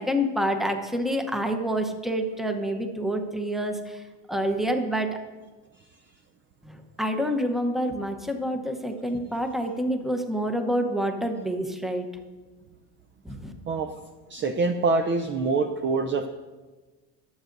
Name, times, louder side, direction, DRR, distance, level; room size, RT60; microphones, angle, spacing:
voice 1, 0.0-5.1 6.6-12.1 13.2-13.5, equal, ahead, 5 dB, 0.8 m, -27 dB
voice 2, 14.3-16.3, right 3 dB, 30° right, 7 dB, 0.5 m, -25 dB
22.5 x 7.9 x 2.6 m, 1.3 s
cardioid pair, 140°, 43 cm